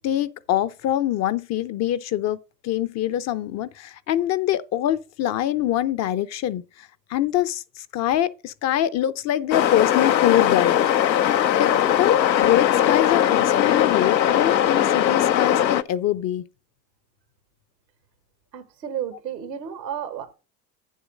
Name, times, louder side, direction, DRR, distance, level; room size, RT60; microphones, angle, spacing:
voice 1, 0.0-2.4 2.6-6.6 7.1-10.8 11.6-16.4, left 12 dB, 35° left, 0.6 m, -24 dB
sound 1, 9.5-15.8, left 10 dB, 90° left, 0.7 m, -20 dB
voice 2, 18.5-20.3, right 9 dB, 80° right, 1.6 m, -32 dB
9.1 x 7.3 x 5.1 m
hypercardioid pair, 80°, 50 cm